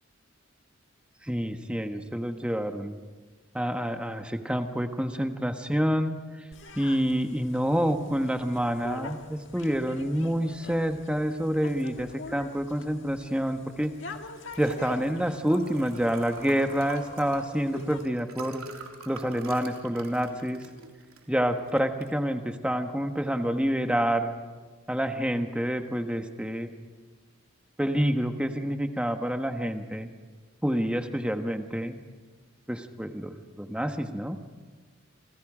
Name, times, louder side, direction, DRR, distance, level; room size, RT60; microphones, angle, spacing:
voice 1, 1.2-3.0 3.5-6.2 6.8-13.9 14.6-18.6 19.1-20.6 21.3-24.4 24.9-26.7 27.8-30.1 30.6-32.0 32.7-34.4, equal, 5° right, 6 dB, 1.3 m, -28 dB
sound 1, 6.5-18.1, left 3 dB, 60° left, 1.8 m, -45 dB
Liquid, 13.8-23.9, right 3 dB, 90° right, 3.5 m, -46 dB
28.5 x 26.5 x 5.0 m, 1.4 s
head